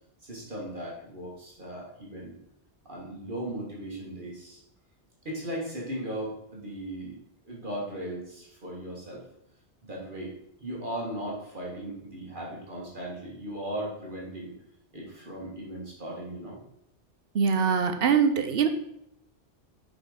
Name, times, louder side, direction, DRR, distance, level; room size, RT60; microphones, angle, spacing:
voice 1, 0.2-2.4 2.9-4.6 5.3-7.2 7.4-9.2 9.8-10.3 10.6-14.5 14.9-16.6, right 1 dB, 45° right, -4 dB, 1.9 m, -37 dB
voice 2, 17.3-18.7, right 6 dB, 60° right, 8 dB, 0.9 m, -23 dB
5.9 x 5.0 x 4.9 m, 0.78 s
omnidirectional pair, 1.2 m